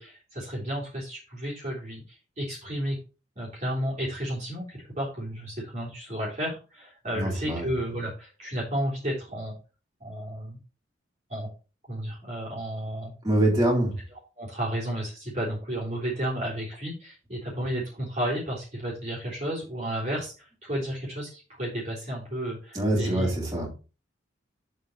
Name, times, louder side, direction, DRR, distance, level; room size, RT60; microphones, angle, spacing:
voice 1, 0.0-3.0 3.3-9.5 10.0-10.6 11.3-11.5 11.9-13.1 14.4-23.3, right 1 dB, 35° right, -5 dB, 3.3 m, -32 dB
voice 2, 7.2-7.7 13.2-14.0 22.7-23.7, right 1 dB, 20° right, -6 dB, 3.8 m, -24 dB
7.5 x 5.1 x 4.5 m, 0.32 s
head